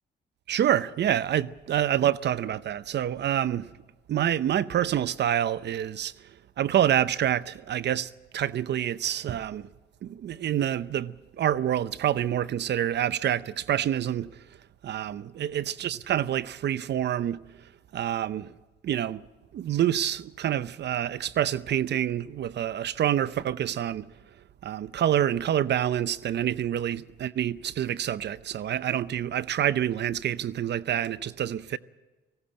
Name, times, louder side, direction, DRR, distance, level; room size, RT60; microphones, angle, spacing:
voice 1, 0.5-3.7 4.1-6.3 6.6-9.7 10.0-14.3 14.8-17.4 17.9-18.5 18.8-19.2 19.5-24.0 24.6-31.8, right 10 dB, 60° right, 0.7 m, -27 dB
18.5 x 16.5 x 8.7 m
cardioid pair, 90°, 20 cm